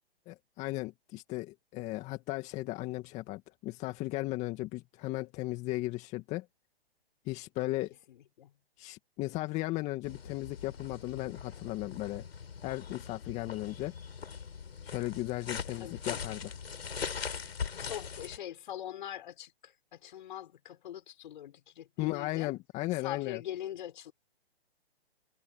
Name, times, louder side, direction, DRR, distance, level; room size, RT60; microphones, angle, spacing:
voice 1, 0.3-6.5 7.3-7.9 8.8-12.2 12.6-13.9 14.8-16.5 22.0-23.4, left 19 dB, 20° left, 2.0 m, -36 dB
voice 2, 8.1-8.5 15.8-16.2 17.8-22.5 22.9-24.1, left 11 dB, 50° left, 5.6 m, -43 dB
sound 1, 10.0-18.4, left 6 dB, 70° left, 7.7 m, -41 dB
hypercardioid pair, 140°, 32 cm